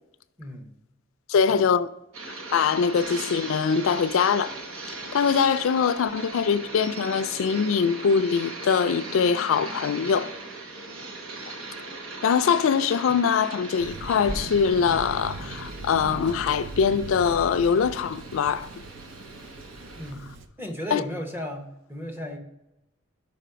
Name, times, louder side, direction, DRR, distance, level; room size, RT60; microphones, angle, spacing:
voice 1, 0.4-0.7 1.5-1.6 20.0-22.4, left 1 dB, 10° right, 0.8 m, -35 dB
voice 2, 1.3-1.9 2.5-4.5 5.1-10.3 12.2-18.7 20.9-21.0, left 6 dB, 70° left, 0.3 m, -23 dB
sound 1, 2.1-20.1, right 3 dB, 85° right, 1.1 m, -39 dB
Thunder, 13.8-20.5, right 2 dB, 60° right, 0.5 m, -39 dB
5.2 x 5.0 x 5.6 m
head